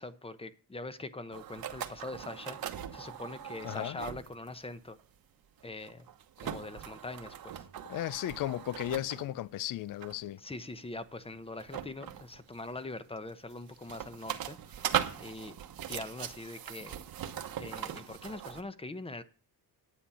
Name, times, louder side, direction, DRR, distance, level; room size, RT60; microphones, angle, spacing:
voice 1, 0.0-2.6 2.9-5.0 5.6-6.1 6.4-7.7 10.4-15.6 15.9-17.0 17.6-19.2, left 2 dB, 15° left, 0.8 m, -43 dB
sound 1, 1.3-4.5 5.0-5.2 5.6-9.4 10.0-10.3 11.6-12.8 13.3-18.6, right 10 dB, 65° right, 1.1 m, -39 dB
voice 2, 3.6-4.0 7.9-10.4, left 13 dB, 60° left, 0.5 m, -35 dB
10.0 x 8.5 x 5.7 m
cardioid pair, 110°, 38 cm